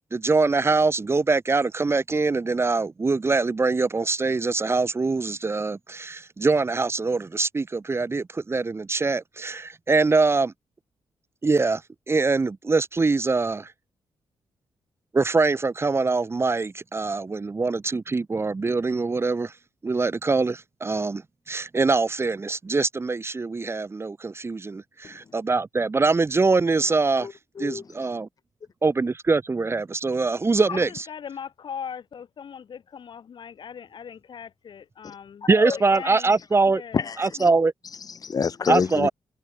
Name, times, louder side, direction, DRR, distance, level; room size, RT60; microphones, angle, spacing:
voice 1, 0.1-10.5 11.4-11.8 12.1-13.7 15.1-19.5 19.8-21.2 21.5-27.3 27.6-28.3 28.8-31.0 35.5-36.8 37.2-37.7 38.7-39.1, right 3 dB, 25° right, 1.4 m, -23 dB
voice 2, 27.2-28.1 30.7-30.8 35.4-35.8 36.9-37.5 37.8-39.1, left 6 dB, 40° left, 1.0 m, -28 dB
voice 3, 30.7-36.4 36.7-37.1, left 7 dB, 60° left, 4.0 m, -39 dB
cardioid pair, 100°, 9 cm